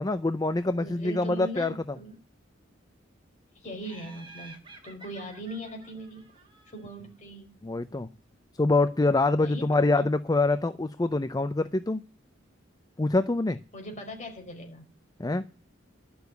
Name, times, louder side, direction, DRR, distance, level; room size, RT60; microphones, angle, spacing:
voice 1, 0.0-2.0 7.6-8.1 8.6-12.0 13.0-13.6 15.2-15.4, left 2 dB, 20° left, 12 dB, 0.5 m, -25 dB
voice 2, 0.7-2.1 3.5-6.3 6.7-7.5 9.3-10.1 13.7-14.9, right 1 dB, 40° left, 2 dB, 4.9 m, -40 dB
Laughter, 3.8-7.1, right 3 dB, 25° right, 2.9 m, -51 dB
11.5 x 7.1 x 8.1 m, 0.35 s
head